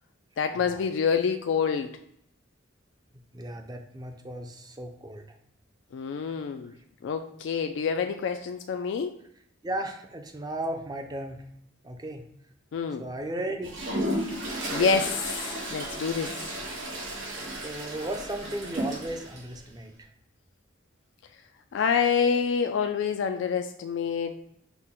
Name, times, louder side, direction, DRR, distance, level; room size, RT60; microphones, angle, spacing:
voice 1, 0.4-2.0 5.9-6.7 7.0-9.1 12.7-13.0 14.3-16.3 21.7-24.5, left 6 dB, 75° left, 7 dB, 0.3 m, -27 dB
voice 2, 3.3-5.3 9.6-11.5 11.8-12.2 13.0-13.8 17.5-20.1, right 1 dB, 20° right, 5 dB, 0.4 m, -35 dB
Toilet flush, 13.6-19.4, right 1 dB, 90° right, 1.0 m, -33 dB
5.8 x 2.1 x 3.6 m, 0.74 s
head